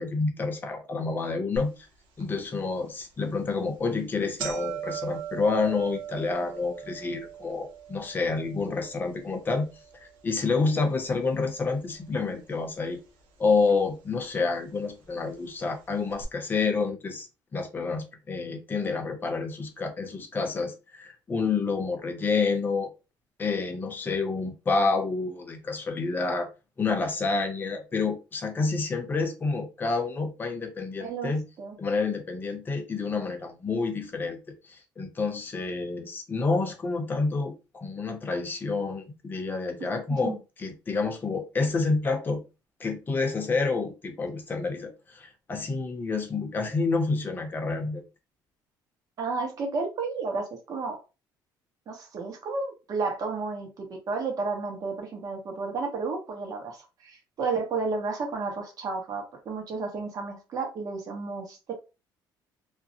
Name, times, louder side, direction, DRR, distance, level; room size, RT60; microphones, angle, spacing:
voice 1, 0.0-1.7 2.2-9.7 10.2-13.0 13.4-17.3 17.5-22.9 23.4-26.5 26.8-31.4 31.8-34.4 34.7-42.4 42.8-48.0, left 4 dB, 25° left, 0.6 m, -28 dB
sound 1, 1.6-1.7 2.2-2.3 3.1-3.3 3.6-3.8 4.0-12.2 12.5-13.2 14.0-14.1 15.1-15.2 15.4-15.5 16.1-16.2, right 9 dB, 90° right, 0.7 m, -40 dB
voice 2, 31.0-31.8 40.1-40.4 49.2-51.0 51.9-61.7, right 4 dB, 45° right, 0.9 m, -32 dB
2.4 x 2.0 x 2.7 m
cardioid pair, 135°, 8 cm